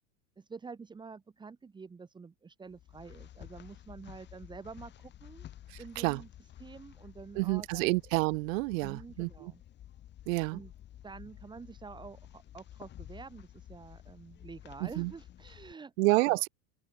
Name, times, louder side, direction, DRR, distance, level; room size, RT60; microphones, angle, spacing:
voice 1, 0.4-5.5 5.8-6.3 6.6-7.9 8.8-9.6 10.5-10.7 11.0-16.4, right 5 dB, 10° right, 2.2 m, -48 dB
sound 1, 2.7-15.7, left 12 dB, 25° left, 3.3 m, -52 dB
voice 2, 7.4-9.5 10.3-10.6 15.0-15.1 16.0-16.5, right 24 dB, 70° right, 0.5 m, -29 dB
open air
supercardioid pair, 170°, 41 cm